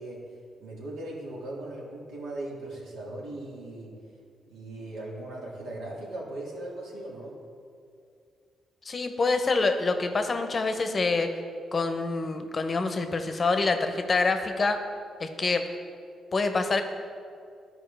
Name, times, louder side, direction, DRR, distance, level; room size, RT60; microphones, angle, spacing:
voice 1, 0.0-4.0 4.5-7.4, right 1 dB, 90° right, -4 dB, 1.8 m, -39 dB
voice 2, 8.9-11.3 11.7-14.8 15.2-15.6 16.3-16.8, left 3 dB, 35° left, 7 dB, 0.7 m, -26 dB
12.5 x 4.9 x 3.3 m, 2.3 s
cardioid pair, 90°, 0 cm